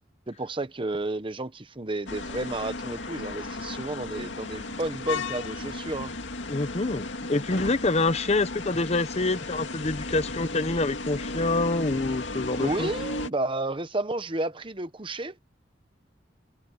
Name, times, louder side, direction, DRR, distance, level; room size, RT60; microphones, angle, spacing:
voice 1, 0.3-6.1 12.6-15.3, right 2 dB, 30° right, 1.0 m, -31 dB
sound 1, 2.1-13.3, left 3 dB, 85° left, 2.2 m, -35 dB
voice 2, 6.5-12.9, left 2 dB, 35° left, 0.9 m, -26 dB
head